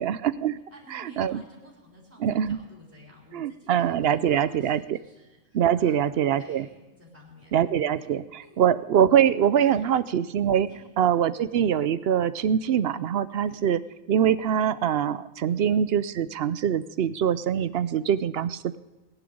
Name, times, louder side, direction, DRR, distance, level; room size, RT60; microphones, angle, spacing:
voice 1, 0.0-0.6 0.9-1.4 2.2-2.6 3.3-5.0 5.5-6.7 7.5-10.7 11.0-13.8 14.1-18.8, right 9 dB, 60° right, 15 dB, 0.7 m, -23 dB
voice 2, 0.7-9.1 9.7-9.9 10.7-10.9 13.4-13.6 15.4-15.7, left 1 dB, 10° right, -4 dB, 3.8 m, -52 dB
19.0 x 11.0 x 5.1 m, 1.1 s
omnidirectional pair, 1.3 m